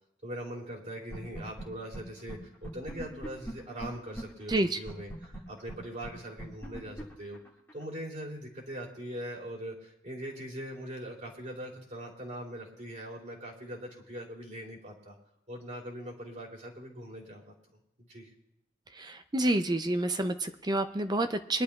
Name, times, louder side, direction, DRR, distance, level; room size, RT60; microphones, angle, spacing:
voice 1, 0.2-7.4 7.7-15.1 15.5-17.5 18.1-18.3, right 1 dB, 40° right, -2 dB, 3.1 m, -41 dB
sound 1, 1.1-1.6 1.9-2.0 2.3-2.4 2.6-4.2 4.5-4.6 4.9-7.8, right 1 dB, 10° left, 1.8 m, -39 dB
voice 2, 19.0-21.6, right 1 dB, 20° right, 9 dB, 0.5 m, -28 dB
23.0 x 11.5 x 2.4 m, 0.83 s
head